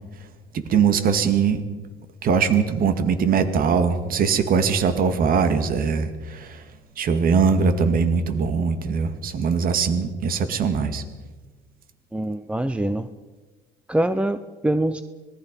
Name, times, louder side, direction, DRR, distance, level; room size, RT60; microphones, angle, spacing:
voice 1, 0.5-1.6 2.2-6.6 7.0-11.0, right 6 dB, 60° right, 9 dB, 2.1 m, -21 dB
voice 2, 12.1-13.1 13.9-15.0, right 1 dB, 5° right, 11 dB, 0.8 m, -24 dB
26.0 x 20.0 x 5.4 m, 1.2 s
cardioid pair, 110°, 17 cm